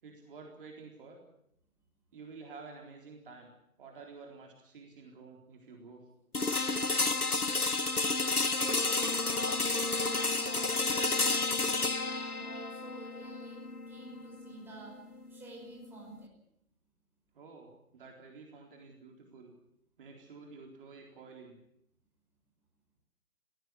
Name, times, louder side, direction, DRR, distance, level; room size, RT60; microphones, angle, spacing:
voice 1, 0.0-1.2 2.1-3.5 3.8-6.0 17.3-19.6 20.0-21.6, right 4 dB, 35° right, 1 dB, 4.1 m, -50 dB
sound 1, 6.3-16.2, left 3 dB, 85° left, 1.4 m, -31 dB
voice 2, 8.4-10.7 11.1-13.6 13.9-14.9 15.3-16.4, right 2 dB, 5° right, -3 dB, 5.5 m, -50 dB
21.0 x 16.5 x 9.9 m, 0.78 s
figure-of-eight pair, 140°, 44 cm